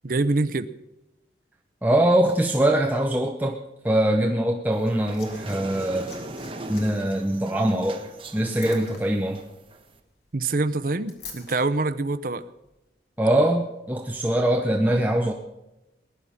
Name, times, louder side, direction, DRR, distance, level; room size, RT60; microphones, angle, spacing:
voice 1, 0.0-0.7 10.3-12.4, right 3 dB, 50° right, 11 dB, 0.7 m, -25 dB
voice 2, 1.8-3.6 3.8-6.1 6.7-8.1 8.3-9.4 13.2-15.3, right 1 dB, 10° right, 2 dB, 0.8 m, -22 dB
Liquid, 4.6-11.6 12.6-12.8, left 4 dB, 70° left, 3.6 m, -48 dB
sound 1, 4.7-10.0, right 2 dB, 30° right, 1.3 m, -40 dB
20.0 x 11.0 x 5.8 m, 0.96 s
head